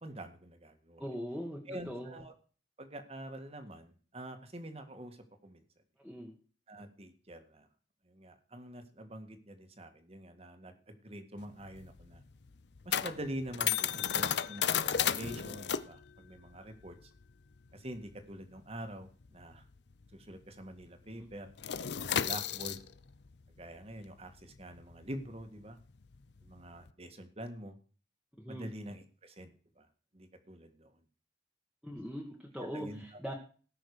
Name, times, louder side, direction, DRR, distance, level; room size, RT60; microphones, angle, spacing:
voice 1, 0.0-1.1 1.7-2.3 2.8-5.6 6.7-7.7 8.1-12.2 12.8-17.1 17.7-19.6 20.1-21.5 22.1-22.8 23.6-25.8 26.4-27.8 28.5-29.5 29.8-29.9 30.1-30.9 32.6-33.3, right 1 dB, 35° right, 7 dB, 1.8 m, -46 dB
voice 2, 1.0-2.2 6.0-6.3 21.2-21.3 28.4-28.7 31.8-33.3, equal, ahead, -3 dB, 1.7 m, -41 dB
sound 1, 11.4-20.4 20.6-20.9 21.2-26.9, left 9 dB, 70° left, 0.7 m, -35 dB
18.5 x 6.3 x 4.9 m, 0.39 s
head